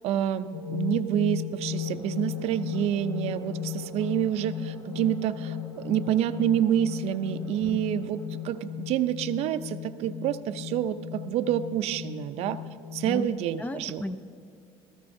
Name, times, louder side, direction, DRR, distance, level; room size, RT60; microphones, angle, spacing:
voice 1, 0.0-8.2 8.4-12.6 12.9-14.0, right 11 dB, 70° right, 12 dB, 0.5 m, -28 dB
sound 1, 0.5-13.3, left 10 dB, 70° left, 0.6 m, -36 dB
sound 2, 1.7-8.7, left 2 dB, 45° left, 2.3 m, -52 dB
voice 2, 7.4-7.8 13.1-13.3 13.6-14.2, left 1 dB, 15° left, 11 dB, 0.4 m, -34 dB
16.5 x 14.0 x 2.6 m, 2.5 s
cardioid pair, 135°, 11 cm